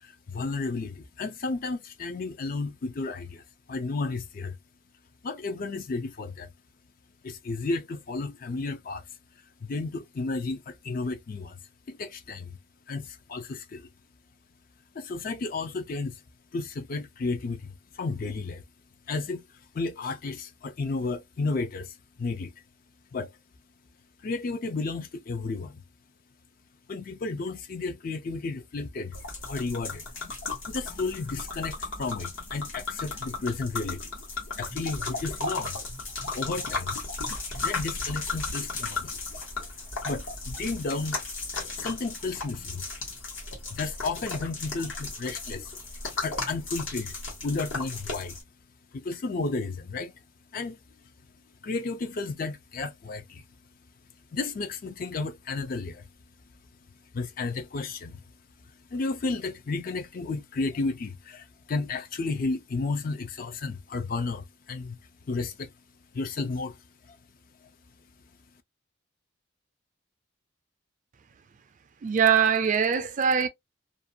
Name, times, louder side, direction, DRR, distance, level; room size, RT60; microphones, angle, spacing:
voice 1, 0.0-3.4 3.7-4.6 5.2-6.5 7.2-9.0 9.6-11.6 11.9-12.6 12.9-13.9 14.9-16.2 16.5-18.6 19.1-19.5 19.7-22.5 23.1-23.3 24.2-25.8 26.9-29.2 29.5-30.0 30.7-34.1 34.6-35.8 36.3-37.0 37.5-39.1 40.0-41.2 41.8-42.8 43.7-45.7 46.2-47.2 47.4-48.4 48.9-50.1 50.5-50.8 51.6-53.4 54.3-56.0 57.1-58.2 58.9-65.0 65.3-65.7 66.1-66.8 67.0-67.2, left 3 dB, 45° left, 0.4 m, -32 dB
sound 1, 29.1-48.4, left 3 dB, 75° left, 1.2 m, -35 dB
voice 2, 72.0-73.5, right 7 dB, 40° right, 0.3 m, -22 dB
2.5 x 2.2 x 2.6 m
head